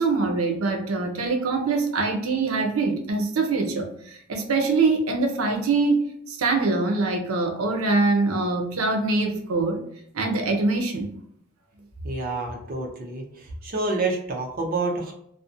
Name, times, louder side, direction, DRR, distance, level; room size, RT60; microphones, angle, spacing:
voice 1, 0.0-9.8 10.1-11.2, right 3 dB, 85° right, 3 dB, 0.6 m, -24 dB
voice 2, 12.0-15.1, right 3 dB, 45° right, 0 dB, 0.6 m, -28 dB
2.5 x 2.1 x 2.5 m, 0.69 s
head